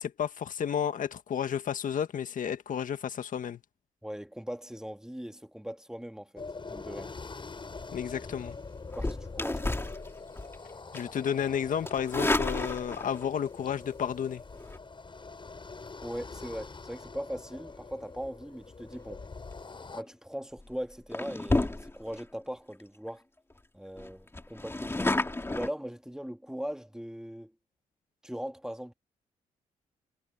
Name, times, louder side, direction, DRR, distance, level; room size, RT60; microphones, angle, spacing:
voice 1, 0.0-3.6 7.9-8.6 10.9-14.4, left 8 dB, 60° left, 1.7 m, -32 dB
voice 2, 4.0-7.1 9.0-9.8 16.0-19.2 19.9-23.2 23.7-25.2 25.5-27.5 28.2-28.9, equal, 5° right, 2.0 m, -40 dB
sound 1, 6.4-20.0, left 4 dB, 35° left, 6.1 m, -44 dB
sound 2, 8.9-10.6 10.9-11.2 11.8-13.2 14.5-14.8 19.8-20.1 20.6-20.7 21.1-22.2 22.7-22.8 23.1-23.2 23.5-23.6 24.0-25.7, left 2 dB, 15° left, 2.5 m, -31 dB
supercardioid pair, 60°, 15 cm